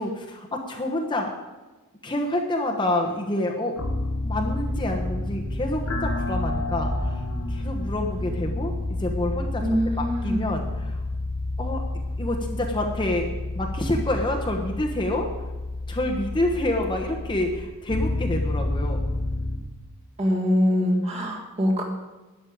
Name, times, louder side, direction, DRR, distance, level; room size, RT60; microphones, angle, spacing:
voice 1, 0.0-1.3 2.0-3.8 4.2-7.2 7.5-9.7 10.0-11.0 11.6-11.8 12.2-13.3 13.5-15.3 15.9-19.0, left 1 dB, 20° left, 1 dB, 1.1 m, -28 dB
sound 1, 3.8-19.6, left 2 dB, 65° left, 1.8 m, -29 dB
voice 2, 9.6-10.6 20.2-21.8, equal, 30° right, 0 dB, 2.0 m, -23 dB
11.5 x 6.5 x 8.7 m, 1.2 s
head